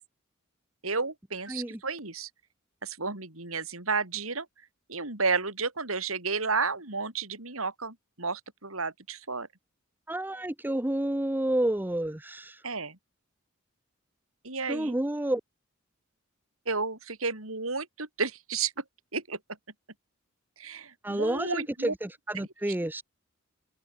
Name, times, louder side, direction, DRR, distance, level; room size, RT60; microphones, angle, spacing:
voice 1, 0.8-2.3 2.8-4.5 4.9-9.5 12.6-13.0 14.4-15.0 16.7-18.8 19.1-19.4 20.6-21.9 22.4-22.5, right 4 dB, 80° right, 6.0 m, -32 dB
voice 2, 1.5-1.8 10.1-12.6 14.7-15.4 21.0-23.0, right 1 dB, 10° right, 0.7 m, -30 dB
open air
head